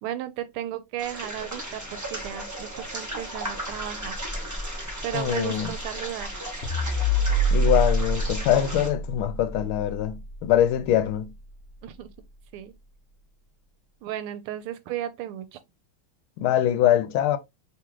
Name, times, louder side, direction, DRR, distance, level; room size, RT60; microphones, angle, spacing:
voice 1, 0.0-4.2 5.0-6.3 11.8-12.1 12.5-12.7 14.0-15.6, right 12 dB, 85° right, 1.5 m, -34 dB
sound 1, 1.0-8.9, right 1 dB, 25° right, 0.3 m, -35 dB
voice 2, 5.1-5.7 7.5-11.3 16.4-17.4, left 11 dB, 80° left, 1.4 m, -23 dB
sound 2, 6.6-11.1, equal, 50° left, 0.7 m, -26 dB
3.6 x 3.6 x 3.0 m
omnidirectional pair, 2.3 m